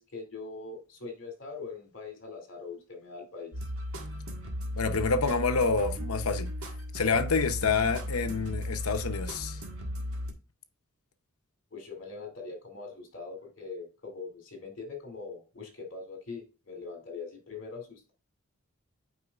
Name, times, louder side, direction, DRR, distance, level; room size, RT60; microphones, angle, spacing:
voice 1, 0.0-3.5 11.7-18.1, left 4 dB, 60° left, 2.5 m, -42 dB
sound 1, 3.5-10.3, left 1 dB, 75° right, 1.7 m, -36 dB
voice 2, 4.8-6.5 6.9-9.6, left 4 dB, 80° left, 0.8 m, -27 dB
8.2 x 5.2 x 2.4 m
head